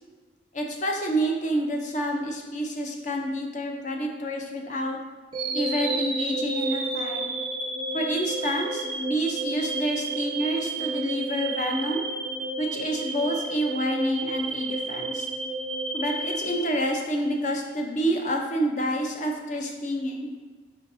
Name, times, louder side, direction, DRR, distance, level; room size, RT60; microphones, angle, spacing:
voice 1, 0.5-5.0 5.5-7.2 7.9-12.0 12.6-15.3 15.9-20.3, equal, 40° left, 2 dB, 0.5 m, -28 dB
sound 1, 5.3-17.4, right 3 dB, 25° right, 0.4 m, -31 dB
4.7 x 4.0 x 2.6 m, 1.4 s
head